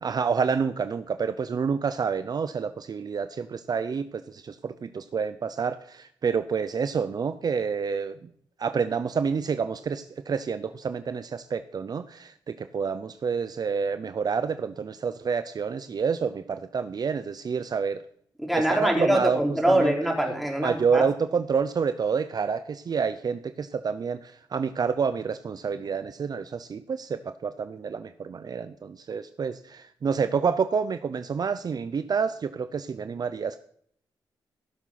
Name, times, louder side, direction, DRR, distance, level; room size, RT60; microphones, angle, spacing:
voice 1, 0.0-8.1 8.6-18.0 18.5-19.4 19.7-19.9 20.6-33.6, right 6 dB, 55° right, 11 dB, 0.7 m, -28 dB
voice 2, 18.4-21.1, right 1 dB, ahead, 0 dB, 4.1 m, -24 dB
15.5 x 7.1 x 5.9 m, 0.62 s
cardioid pair, 65°, 8 cm